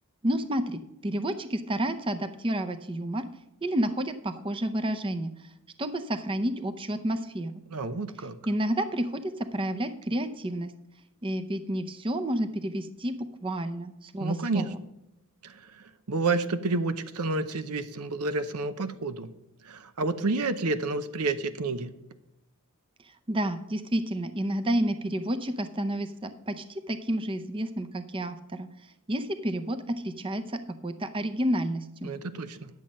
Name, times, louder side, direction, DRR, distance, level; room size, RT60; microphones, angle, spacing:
voice 1, 0.2-3.2 3.6-5.3 5.8-7.5 8.2-10.7 11.2-14.8 23.3-28.7 29.1-32.1, right 1 dB, 25° right, 9 dB, 0.6 m, -30 dB
voice 2, 7.7-8.3 14.2-14.7 15.4-15.5 16.1-19.3 19.7-21.9 32.0-32.7, right 3 dB, 90° right, 11 dB, 0.8 m, -29 dB
10.5 x 7.5 x 5.3 m, 0.91 s
head